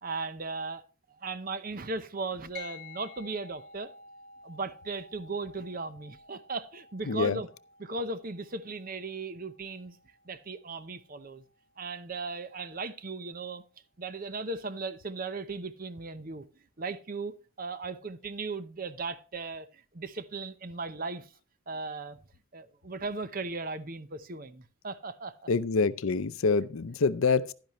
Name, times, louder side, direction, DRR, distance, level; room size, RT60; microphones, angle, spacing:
voice 1, 0.0-0.8 1.2-3.9 4.4-7.5 7.8-10.0 10.3-11.4 11.8-13.6 14.0-16.5 16.8-21.3 21.7-22.2 22.5-25.4, right 3 dB, 40° right, 0.8 m, -37 dB
sound 1, 2.5-12.3, left 5 dB, 50° left, 4.8 m, -52 dB
voice 2, 7.0-7.4 25.5-27.5, left 4 dB, 75° left, 0.6 m, -26 dB
11.5 x 10.5 x 3.0 m
head